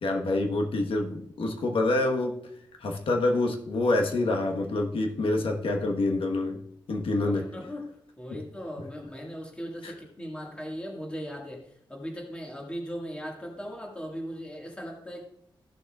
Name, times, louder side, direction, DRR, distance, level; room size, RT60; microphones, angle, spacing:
voice 1, 0.0-2.4 2.8-6.6 6.9-7.5 8.3-8.4 9.8-9.9, left 2 dB, 85° left, 2 dB, 1.2 m, -27 dB
voice 2, 7.2-15.2, equal, 10° left, -1 dB, 1.8 m, -38 dB
14.5 x 6.9 x 2.4 m, 0.70 s
wide cardioid pair, 150°, 9 cm